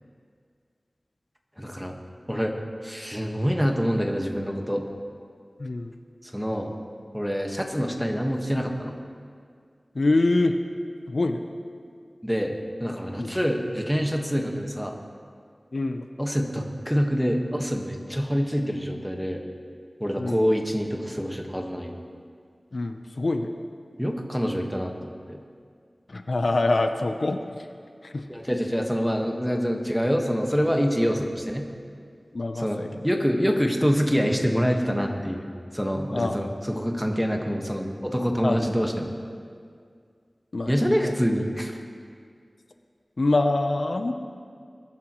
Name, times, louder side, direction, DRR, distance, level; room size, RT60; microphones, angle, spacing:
voice 1, 1.6-2.0 2.3-4.9 6.2-6.7 7.1-9.0 12.2-15.0 16.2-19.4 20.0-22.0 24.0-25.4 28.3-31.7 32.6-32.8 33.0-39.1 40.7-41.8, equal, ahead, 2 dB, 1.4 m, -26 dB
voice 2, 5.6-5.9 9.9-10.5 11.1-11.4 13.2-13.4 15.7-16.1 20.2-20.4 22.7-23.5 26.1-27.7 28.0-28.2 32.3-32.9 36.1-36.4 38.4-38.7 40.5-41.1 43.2-44.1, left 2 dB, 70° left, 6 dB, 0.7 m, -25 dB
21.5 x 11.5 x 3.1 m, 2.2 s
wide cardioid pair, 55°, 0 cm